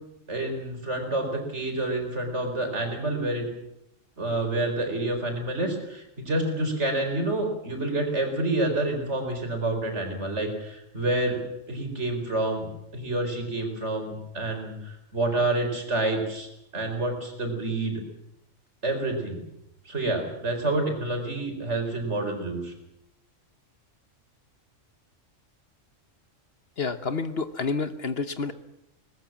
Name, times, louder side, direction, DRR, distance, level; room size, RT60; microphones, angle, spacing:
voice 1, 0.3-3.5 4.2-11.4 11.7-18.0 18.8-19.4 19.8-22.7, right 2 dB, 60° right, 4 dB, 4.6 m, -28 dB
voice 2, 26.8-28.5, left 4 dB, 50° left, 11 dB, 1.2 m, -29 dB
21.5 x 20.0 x 7.4 m, 0.83 s
omnidirectional pair, 1.4 m